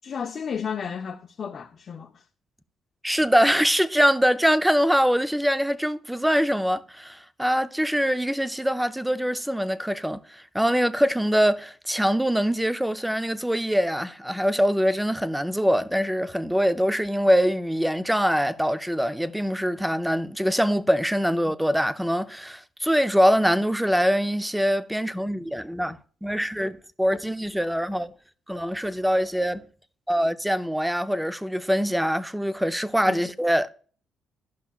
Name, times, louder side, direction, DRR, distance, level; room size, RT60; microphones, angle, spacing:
voice 1, 0.0-2.3 33.1-33.3, left 7 dB, 50° left, 0.5 m, -33 dB
voice 2, 3.0-28.1 28.5-29.6 30.1-33.7, equal, 5° right, 0.4 m, -23 dB
13.0 x 5.6 x 2.3 m
cardioid pair, 90°, 0 cm